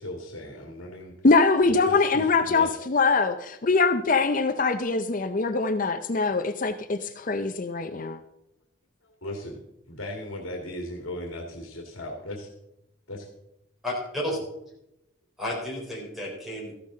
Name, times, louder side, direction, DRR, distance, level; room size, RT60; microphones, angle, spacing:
voice 1, 0.0-1.1 1.9-2.7 9.2-9.6 9.9-12.5 13.1-13.2, left 1 dB, 70° left, 1 dB, 2.1 m, -37 dB
voice 2, 1.2-8.2, left 4 dB, 40° left, 8 dB, 0.5 m, -23 dB
voice 3, 13.8-14.4 15.4-16.8, left 1 dB, ahead, -2 dB, 3.9 m, -32 dB
14.0 x 12.0 x 3.8 m, 0.86 s
head